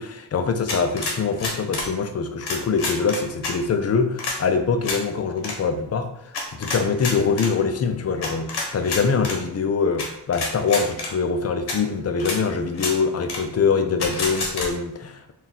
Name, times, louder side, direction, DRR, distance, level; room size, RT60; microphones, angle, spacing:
voice 1, 0.0-15.3, left 5 dB, 35° left, 7 dB, 0.4 m, -24 dB
sound 1, 0.7-1.9 2.4-3.5 4.2-4.4 4.8-5.0 5.4-5.6 6.3-7.5 8.2-9.4 10.0-10.1 10.3-11.1 11.7-11.8 12.2-12.4 12.7-12.9 13.3-13.4 14.0-14.7, left 3 dB, 65° left, 1.0 m, -28 dB
3.9 x 2.4 x 4.0 m, 0.76 s
wide cardioid pair, 120°, 43 cm